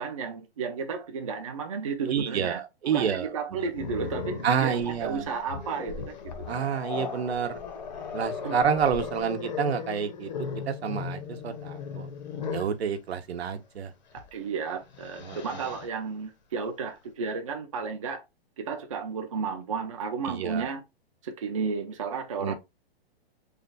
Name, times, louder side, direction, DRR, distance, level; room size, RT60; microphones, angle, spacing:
voice 1, 0.0-6.1 8.4-8.5 14.1-18.2 18.6-20.8 21.2-22.5, right 5 dB, 35° right, 0.4 m, -33 dB
voice 2, 2.1-3.7 4.4-5.3 6.5-7.6 8.1-10.3 10.7-12.1 12.5-13.9 15.2-15.4 20.2-20.7 22.4-22.5, right 7 dB, 85° right, 0.8 m, -29 dB
Growling, 3.7-12.8 14.1-14.3 14.7-15.9, left 6 dB, 45° left, 0.6 m, -37 dB
3.2 x 2.3 x 3.8 m
hypercardioid pair, 175°, 31 cm